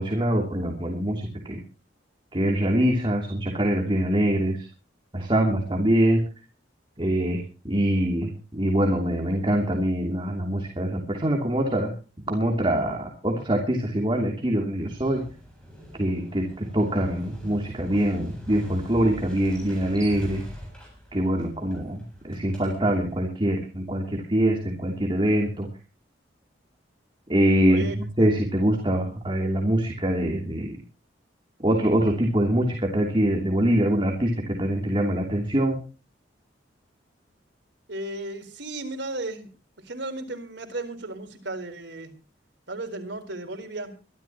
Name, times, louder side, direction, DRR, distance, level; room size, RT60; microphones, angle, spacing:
voice 1, 0.0-1.6 2.3-4.7 5.1-6.2 7.0-11.9 12.3-15.2 16.0-20.4 21.1-25.7 27.3-27.8 28.2-30.8 31.6-35.8, right 1 dB, 30° right, 1 dB, 2.9 m, -24 dB
Motorcycle, 14.8-23.1, equal, 5° left, 7.7 m, -41 dB
voice 2, 27.7-28.3 37.9-39.5 39.8-42.1 42.7-44.0, right 2 dB, 70° right, 5 dB, 4.2 m, -35 dB
24.0 x 13.0 x 3.0 m, 0.34 s
head